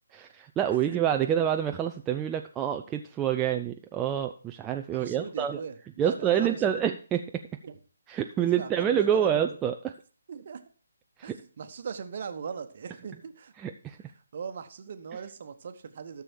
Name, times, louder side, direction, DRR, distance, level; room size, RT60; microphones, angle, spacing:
voice 1, 0.1-5.6 6.0-7.2 8.1-9.9 11.2-11.4 13.6-14.0, right 9 dB, 10° right, 4 dB, 0.4 m, -27 dB
voice 2, 4.9-6.8 7.6-7.8 8.4-9.4 10.3-10.6 11.2-13.5 14.0-16.2, right 6 dB, 40° right, 9 dB, 1.1 m, -40 dB
13.0 x 6.9 x 4.4 m, 0.39 s
figure-of-eight pair, 145°, 0 cm